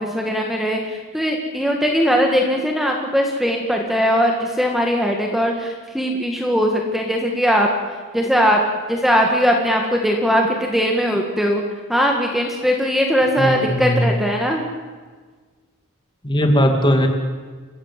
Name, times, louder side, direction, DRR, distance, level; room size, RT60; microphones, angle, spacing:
voice 1, 0.0-7.7 8.1-8.6 8.9-11.6 11.9-14.6, equal, ahead, 1 dB, 1.9 m, -19 dB
voice 2, 13.4-14.1 16.2-17.1, equal, 20° left, 4 dB, 2.5 m, -18 dB
29.5 x 16.0 x 7.7 m, 1.5 s
head